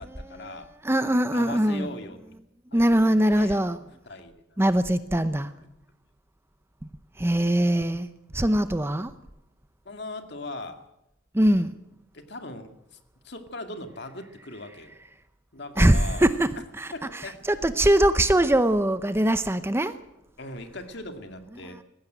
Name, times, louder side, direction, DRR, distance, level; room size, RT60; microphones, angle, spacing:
voice 1, 0.0-0.7 1.3-2.4 2.7-3.6 4.1-4.6 9.9-10.8 12.1-13.0 13.2-15.0 15.5-16.3 16.9-17.4 20.4-21.8, left 2 dB, 60° left, 2.1 m, -39 dB
voice 2, 0.8-1.9 2.7-3.8 4.6-5.5 7.2-8.1 8.3-9.1 11.3-11.7 15.8-16.5 16.8-16.9 17.5-20.0, right 1 dB, 10° right, 0.7 m, -22 dB
19.0 x 16.0 x 9.1 m
head